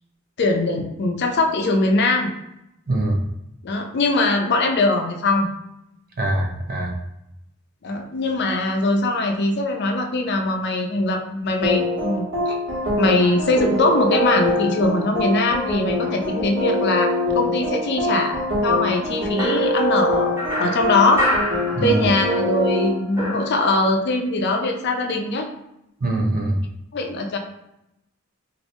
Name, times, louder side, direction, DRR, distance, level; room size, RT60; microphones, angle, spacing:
voice 1, 0.4-2.3 3.6-5.5 7.8-12.5 13.0-21.3 21.8-25.5 26.9-27.4, left 2 dB, 55° left, 3 dB, 0.5 m, -21 dB
voice 2, 2.9-3.2 6.2-7.0 21.7-22.0 26.0-26.6, right 1 dB, 45° right, 2 dB, 0.5 m, -22 dB
sound 1, 11.6-22.9, left 1 dB, 65° right, 1.4 m, -24 dB
sound 2, 19.4-22.4 22.7-24.2, left 1 dB, 15° right, 1.1 m, -28 dB
2.9 x 2.6 x 3.1 m, 0.84 s
head